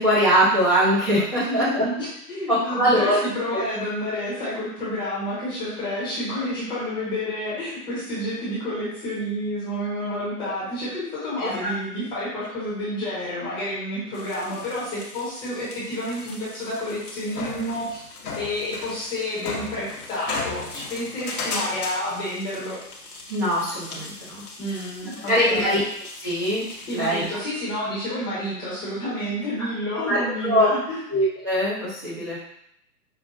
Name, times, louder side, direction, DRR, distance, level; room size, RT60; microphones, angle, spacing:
voice 1, 0.0-1.8 2.5-3.2 3.5-3.6 11.4-11.7 23.3-24.4 25.3-25.8 26.2-26.6 26.9-27.2 29.6-29.7 30.0-30.7 31.1-32.4, equal, 20° right, -10 dB, 0.9 m, -22 dB
voice 2, 1.5-18.0 18.3-22.8 24.6-25.8 26.7-31.0, left 1 dB, 10° left, -11 dB, 1.1 m, -29 dB
sound 1, 14.1-27.4, left 3 dB, 65° left, 1.0 m, -37 dB
5.6 x 2.4 x 2.5 m, 0.75 s
figure-of-eight pair, 135°, 47 cm